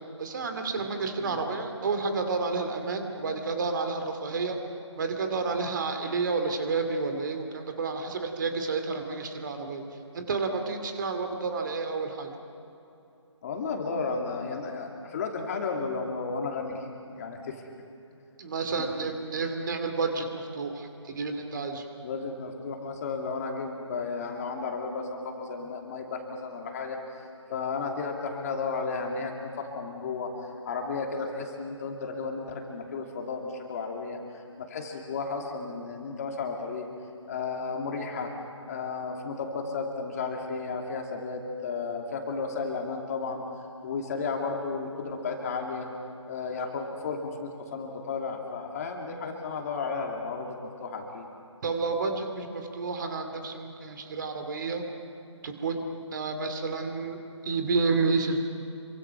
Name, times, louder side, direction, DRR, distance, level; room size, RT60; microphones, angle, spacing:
voice 1, 0.2-4.6 5.0-9.8 10.1-12.3 18.4-20.3 20.5-21.8 51.6-54.8 55.4-58.4, right 4 dB, 40° right, 6 dB, 2.6 m, -30 dB
voice 2, 13.4-17.6 18.8-18.9 22.0-36.9 37.3-38.3 38.7-43.5 43.8-45.9 46.3-51.3, left 4 dB, 30° left, 2 dB, 2.7 m, -33 dB
27.5 x 24.5 x 5.9 m, 2.8 s
figure-of-eight pair, 155°, 16 cm